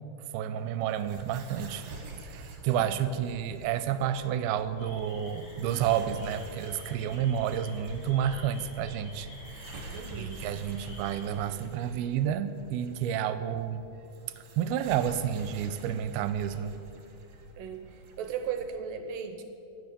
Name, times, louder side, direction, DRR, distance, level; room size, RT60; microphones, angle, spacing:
voice 1, 0.3-1.9 2.2-9.3 10.1-13.8 14.6-16.8, right 9 dB, 90° right, 11 dB, 2.6 m, -30 dB
sound 1, 0.6-18.7, right 3 dB, 50° right, 2.5 m, -49 dB
sound 2, 4.8-11.5, equal, 35° left, 2.8 m, -45 dB
voice 2, 9.9-10.4 17.6-19.4, right 7 dB, 70° right, 8 dB, 2.3 m, -37 dB
16.0 x 10.0 x 6.8 m, 2.8 s
omnidirectional pair, 4.4 m